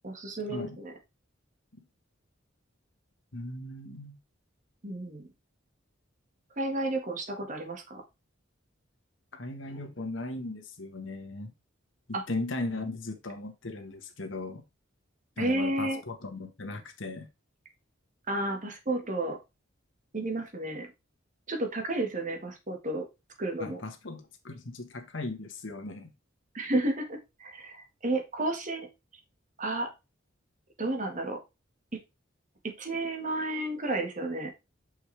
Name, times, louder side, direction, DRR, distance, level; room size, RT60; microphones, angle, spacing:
voice 1, 0.0-0.9 4.8-5.3 6.6-8.0 12.1-12.2 15.4-16.0 18.3-19.4 20.1-20.9 21.5-23.1 23.4-23.8 26.5-28.9 29.6-29.9 30.8-31.4 31.9-32.0 32.6-34.5, right 2 dB, 40° right, 1.7 m, -32 dB
voice 2, 3.3-4.2 9.3-11.5 12.1-14.6 15.4-17.3 23.6-26.1, left 2 dB, 70° left, 1.4 m, -37 dB
6.2 x 5.5 x 3.4 m
head